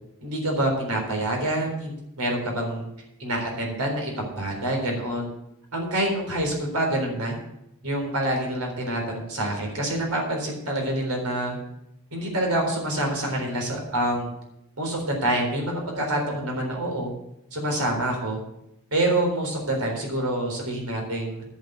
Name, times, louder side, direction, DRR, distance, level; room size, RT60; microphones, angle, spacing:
voice 1, 0.2-2.9 3.2-5.3 5.7-7.3 7.8-11.6 12.1-14.3 14.8-17.1 17.5-18.4 18.9-21.4, right 1 dB, 85° right, 1 dB, 4.0 m, -26 dB
11.0 x 6.6 x 7.8 m, 0.83 s
head